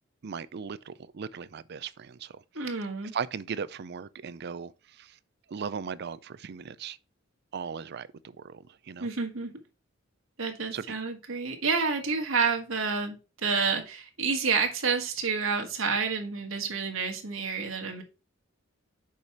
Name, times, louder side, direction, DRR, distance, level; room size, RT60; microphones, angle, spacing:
voice 1, 0.2-2.4 3.1-5.2 5.5-7.0 7.5-8.1 8.4-9.1 10.7-11.0, right 6 dB, 55° right, 0.5 m, -37 dB
voice 2, 2.5-3.1 9.0-9.5 10.4-18.0, right 5 dB, 85° right, 1.8 m, -29 dB
6.7 x 5.0 x 4.4 m
head